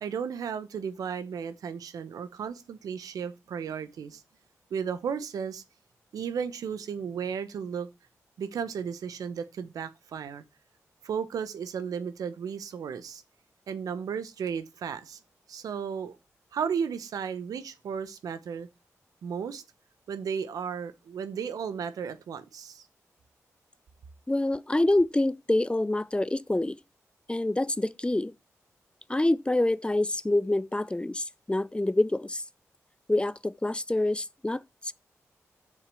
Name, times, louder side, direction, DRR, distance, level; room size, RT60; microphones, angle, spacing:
voice 1, 0.0-4.2 4.7-5.6 6.1-7.9 8.4-10.4 11.0-13.2 13.7-15.2 15.5-16.2 16.5-18.7 19.2-19.6 20.1-22.9, right 7 dB, 85° right, 0.9 m, -34 dB
voice 2, 24.3-26.8 27.3-28.3 29.1-32.4 33.1-34.9, left 1 dB, 15° left, 0.5 m, -26 dB
6.7 x 5.0 x 6.9 m
supercardioid pair, 40°, 6 cm